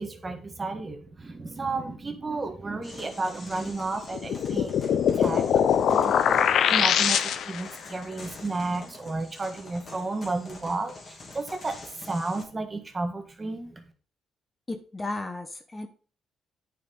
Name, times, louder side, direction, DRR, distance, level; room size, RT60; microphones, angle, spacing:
voice 1, 0.0-13.8, right 3 dB, 25° right, 6 dB, 1.6 m, -33 dB
sound 1, 2.8-12.4, left 2 dB, 40° left, 2.9 m, -46 dB
sound 2, 4.1-7.7, left 8 dB, 70° left, 0.7 m, -23 dB
voice 2, 14.7-15.9, left 2 dB, 20° left, 7 dB, 1.2 m, -34 dB
9.4 x 5.6 x 4.0 m, 0.41 s
cardioid pair, 90°, 0 cm